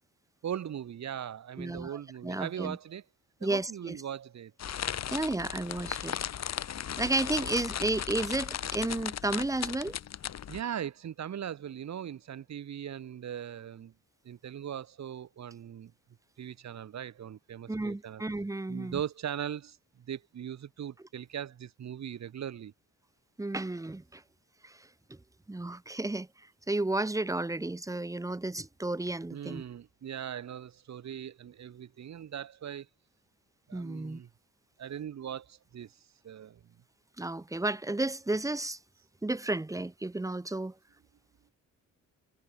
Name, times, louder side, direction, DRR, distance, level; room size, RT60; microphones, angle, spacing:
voice 1, 0.4-3.0 3.4-4.5 7.0-7.4 10.5-13.9 14.2-15.9 16.4-18.2 18.7-22.7 29.3-32.9 33.7-34.3 34.8-36.0 36.2-36.6, right 9 dB, 55° right, 6.5 m, -39 dB
voice 2, 1.6-2.0 2.2-2.8 3.4-4.0 5.1-6.2 7.0-10.0 17.7-19.0 23.4-24.2 24.6-25.2 25.5-26.3 26.7-29.6 33.7-34.2 37.2-38.8 39.2-40.7, right 2 dB, 10° right, 1.4 m, -32 dB
sound 1, 4.6-10.6, left 9 dB, 55° left, 3.3 m, -36 dB
wide cardioid pair, 160°, 32 cm